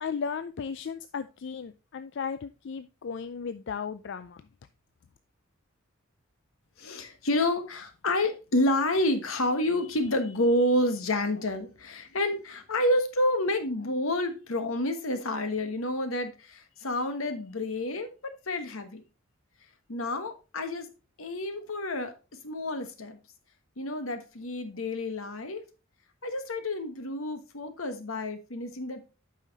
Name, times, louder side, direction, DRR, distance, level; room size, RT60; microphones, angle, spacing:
voice 1, 0.0-4.4, left 6 dB, 60° left, 12 dB, 0.4 m, -35 dB
voice 2, 6.8-19.0 19.9-20.9 21.2-22.1 22.4-23.2 23.8-25.6 26.2-29.0, left 1 dB, 80° left, 8 dB, 1.3 m, -29 dB
8.3 x 5.7 x 4.0 m, 0.31 s
head